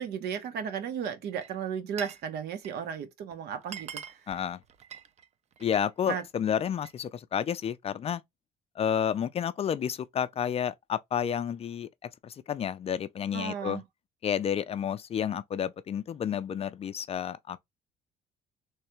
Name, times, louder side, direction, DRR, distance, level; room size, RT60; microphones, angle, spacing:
voice 1, 0.0-4.2 6.1-6.2 13.3-13.8, right 7 dB, 75° right, 0.9 m, -34 dB
Glass, 1.3-2.3 2.5-2.9 3.3-3.4 3.6-5.9 6.3-7.0, right 8 dB, 40° right, 0.5 m, -45 dB
voice 2, 4.3-4.6 5.6-8.2 8.8-11.9 12.2-13.8 14.2-17.6, left 8 dB, 35° left, 0.4 m, -30 dB
3.3 x 3.2 x 3.0 m
cardioid pair, 110°, 17 cm